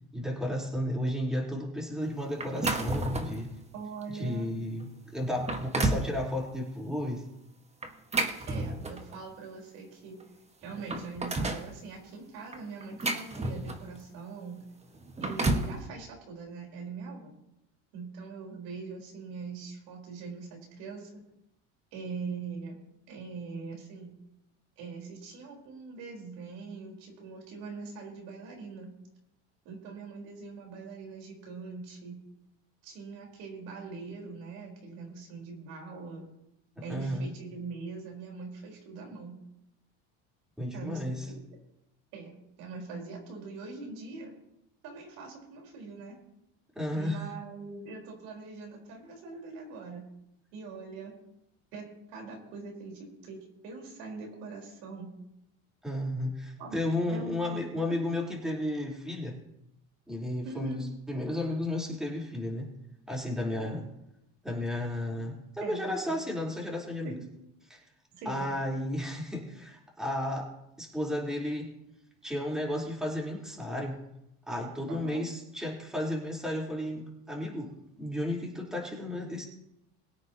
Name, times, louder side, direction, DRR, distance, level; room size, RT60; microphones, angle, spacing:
voice 1, 0.1-3.5 4.1-7.2 36.9-37.3 40.6-41.3 46.7-47.2 55.8-59.4 60.1-62.7 63.1-63.9 64.4-67.1 67.7-67.8 68.3-70.5 70.8-71.7 72.2-74.0 74.5-79.5, left 1 dB, ahead, -3 dB, 4.1 m, -33 dB
sound 1, 2.4-3.4 4.0-4.2 4.8-4.9 5.3-6.1 7.8-9.1 10.2-10.3 10.6-11.7 12.5-14.0 14.9-15.8, right 2 dB, 20° right, 1.6 m, -31 dB
voice 2, 3.7-4.5 8.4-10.2 10.6-14.6 15.2-17.3 17.9-21.2 21.9-22.8 23.1-24.1 24.8-28.9 29.6-32.2 32.8-36.3 36.8-39.4 40.7-41.4 42.1-44.3 44.8-46.2 46.9-50.0 50.5-51.1 51.7-55.1 56.6-56.8 57.1-57.8 60.4-60.8 65.6-66.2 67.0-67.2 68.1-68.5 74.9-75.2, right 4 dB, 75° right, -1 dB, 4.7 m, -42 dB
22.5 x 9.1 x 3.0 m, 0.84 s
supercardioid pair, 105°, 34 cm